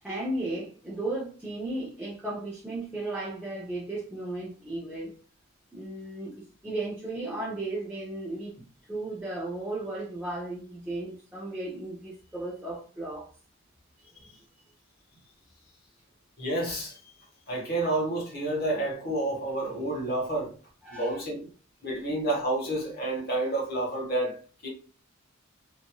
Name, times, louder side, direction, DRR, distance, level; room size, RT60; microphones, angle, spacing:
voice 1, 0.0-5.1 5.7-8.5 8.9-13.3 20.8-21.2, right 2 dB, 5° right, 0.5 m, -35 dB
voice 2, 16.4-17.0 17.5-20.5 20.9-21.4 21.8-24.4 24.6-24.7, right 1 dB, 45° left, 1.0 m, -29 dB
2.9 x 2.5 x 2.2 m
head